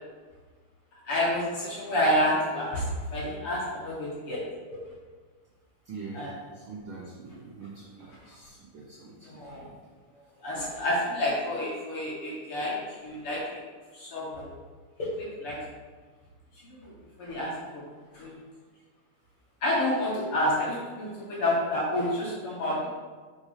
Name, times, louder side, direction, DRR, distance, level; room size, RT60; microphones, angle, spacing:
voice 1, 1.1-4.4 6.1-6.3 9.2-9.7 10.4-12.8 13.0-13.4 13.9-14.5 15.0-15.6 16.8-16.9 17.2-17.5 18.1-18.3 19.6-22.9, left 1 dB, 55° left, -6 dB, 2.1 m, -29 dB
voice 2, 5.8-9.8 10.5-10.7, right 4 dB, 75° right, -3 dB, 1.1 m, -44 dB
8.6 x 5.2 x 3.2 m, 1.5 s
omnidirectional pair, 3.4 m